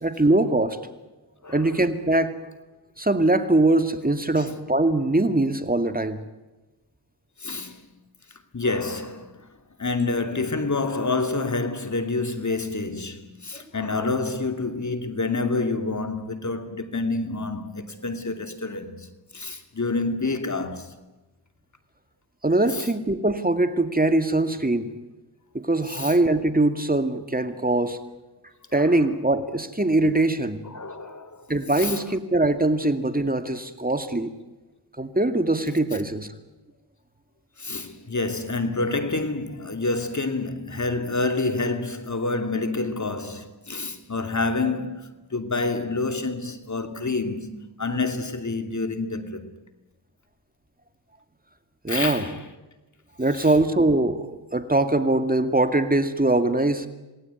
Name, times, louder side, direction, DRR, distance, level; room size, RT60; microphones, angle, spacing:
voice 1, 0.0-0.8 1.5-2.3 3.0-6.2 22.4-24.9 25.5-28.0 28.7-30.6 31.5-34.3 35.0-36.3 51.8-52.3 53.2-56.9, right 2 dB, 20° right, 2.3 m, -22 dB
voice 2, 1.4-1.8 4.4-4.5 7.4-7.9 8.5-9.5 9.8-21.0 22.7-22.9 25.9-26.1 28.7-29.0 30.6-31.5 31.8-32.2 37.6-49.5 51.9-52.4 53.4-53.5, left 3 dB, 45° left, 2.8 m, -28 dB
27.5 x 19.5 x 9.5 m
cardioid pair, 55°, 40 cm